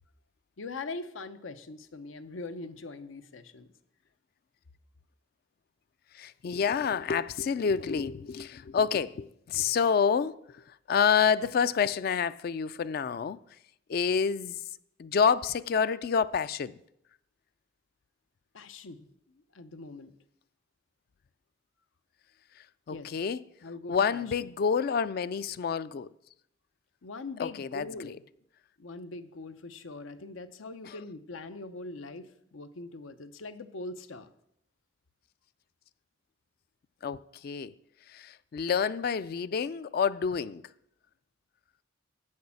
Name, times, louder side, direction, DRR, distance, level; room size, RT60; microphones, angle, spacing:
voice 1, 0.6-3.7 18.5-20.1 22.9-23.2 23.6-24.5 27.0-28.2 28.8-34.3, left 3 dB, 90° left, 0.7 m, -42 dB
voice 2, 6.1-10.4 10.9-13.4 13.9-14.6 15.0-16.7 22.9-23.4 23.9-26.1 27.4-27.8 30.9-31.0 37.0-37.2 37.4-37.7 38.1-40.6, left 6 dB, 50° left, 0.3 m, -28 dB
8.5 x 6.5 x 7.0 m
head